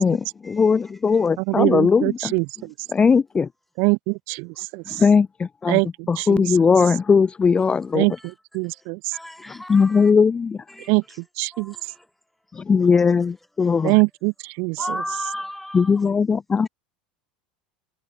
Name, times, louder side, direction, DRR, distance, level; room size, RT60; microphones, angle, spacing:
voice 1, 0.0-2.3 2.9-3.5 4.9-5.8 6.1-8.1 9.5-10.6 12.5-14.0 15.7-16.7, left 5 dB, 20° left, 0.7 m, -19 dB
voice 2, 1.4-2.7 3.8-5.0 5.7-6.4 7.9-8.1 8.5-9.2 10.9-11.0 11.4-11.7 13.8-15.0, right 32 dB, 55° right, 1.0 m, -23 dB
voice 3, 9.1-10.1 10.7-10.9 11.5-12.1 13.6-13.7 14.8-16.0, left 1 dB, 5° left, 1.4 m, -34 dB
hypercardioid pair, 85°, 5 cm